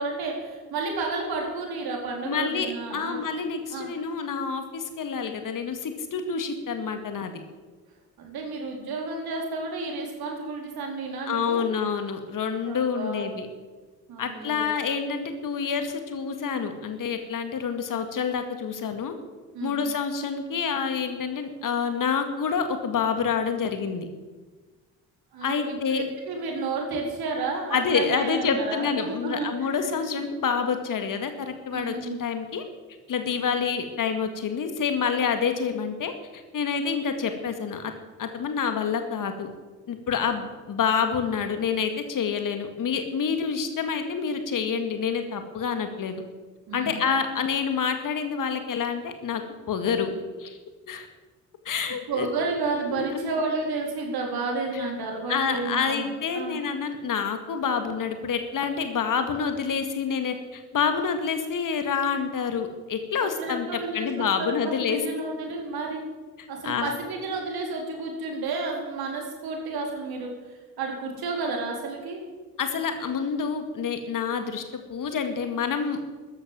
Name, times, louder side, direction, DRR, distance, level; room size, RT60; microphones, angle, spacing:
voice 1, 0.0-3.2 3.7-3.9 8.2-11.7 12.6-13.3 14.1-14.7 19.5-19.8 25.3-30.2 31.7-32.2 33.3-33.6 46.7-47.0 52.1-56.6 63.2-66.0 66.5-72.2, right 3 dB, 60° right, 1 dB, 4.1 m, -31 dB
voice 2, 2.2-7.3 11.3-13.5 14.2-19.1 19.6-24.1 25.4-26.0 27.7-32.6 33.1-37.9 38.2-39.5 39.9-46.2 46.7-49.4 49.7-50.1 50.4-50.6 50.9-51.1 51.7-52.3 52.9-53.3 55.3-65.0 66.6-67.0 72.6-76.0, left 6 dB, 50° left, 7 dB, 2.0 m, -28 dB
13.5 x 10.5 x 7.6 m, 1.3 s
figure-of-eight pair, 45°, 41 cm